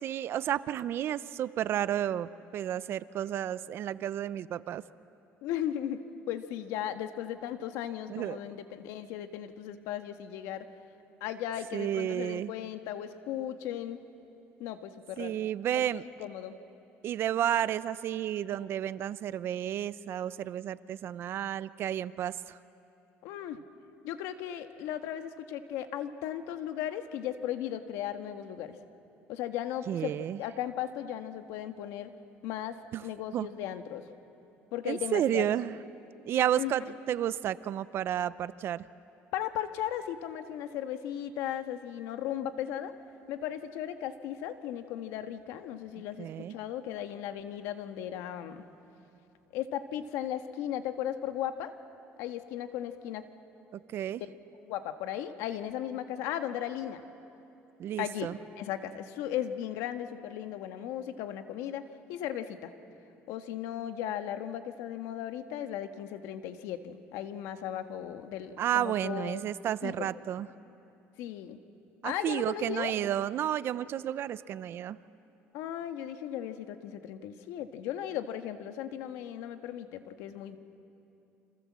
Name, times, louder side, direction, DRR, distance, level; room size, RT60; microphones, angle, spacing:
voice 1, 0.0-4.8 8.1-8.4 11.7-12.5 15.2-16.0 17.0-22.3 29.9-30.4 32.9-33.0 33.3-33.5 34.9-35.8 36.2-38.8 46.2-46.5 53.9-54.2 57.8-58.3 68.6-70.5 72.0-75.0, right 11 dB, 55° right, 16 dB, 0.7 m, -31 dB
voice 2, 5.4-6.0 6.3-10.6 11.2-14.0 14.6-15.4 15.7-15.8 16.2-16.6 23.2-23.7 24.0-28.7 29.3-32.1 32.4-34.0 34.7-35.6 36.5-36.7 39.3-42.9 43.3-48.6 49.5-51.7 52.2-53.2 54.3-54.4 54.6-57.0 58.0-58.3 58.6-61.8 62.1-62.7 63.3-69.4 69.8-70.1 71.2-71.6 72.0-72.9 75.5-80.6, left 11 dB, 85° left, 8 dB, 1.5 m, -36 dB
29.0 x 26.5 x 7.5 m, 2.8 s
cardioid pair, 120°, 5 cm